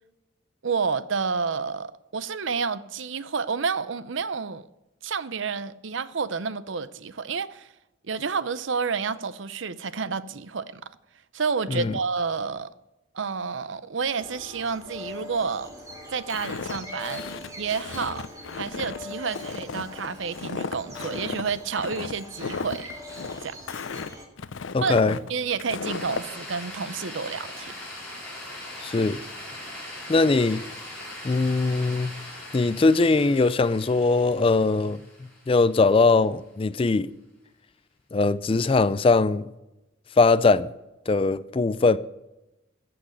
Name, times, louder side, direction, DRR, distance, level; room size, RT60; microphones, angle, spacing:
voice 1, 0.6-4.6 5.0-7.7 8.0-10.8 11.3-12.7 13.1-15.7 16.1-17.2 17.5-18.3 18.5-22.9 23.4-23.6 24.8-25.0 25.3-27.7, right 5 dB, 65° right, 0.6 m, -30 dB
sound 1, 14.2-24.3, left 1 dB, 15° right, 2.3 m, -43 dB
Walk footsteps, 16.3-26.3, left 4 dB, 70° left, 0.6 m, -35 dB
voice 2, 24.7-25.2 28.8-29.2 30.1-30.6 31.2-32.1 32.5-35.0 35.5-37.1 38.1-39.5 40.2-40.7 41.1-42.0, left 3 dB, 25° left, 0.3 m, -21 dB
sound 2, 25.8-36.1, left 1 dB, 5° left, 4.4 m, -41 dB
14.5 x 6.0 x 9.1 m
head